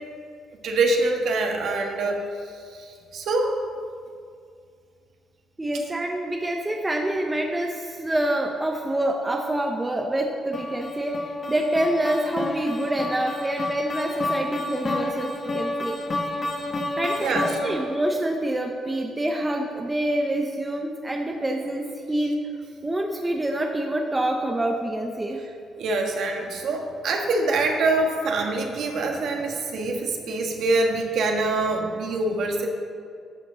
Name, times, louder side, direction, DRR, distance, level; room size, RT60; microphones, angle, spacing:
voice 1, 0.6-2.2 2.8-3.6 17.2-17.8 25.8-32.7, right 2 dB, 70° right, 2 dB, 1.4 m, -25 dB
voice 2, 5.6-16.0 17.0-22.4 22.8-25.4, right 1 dB, 15° right, 1 dB, 0.9 m, -26 dB
sound 1, 10.5-18.0, left 2 dB, 40° left, 1.4 m, -30 dB
11.0 x 5.2 x 6.9 m, 2.2 s
cardioid pair, 90°, 0 cm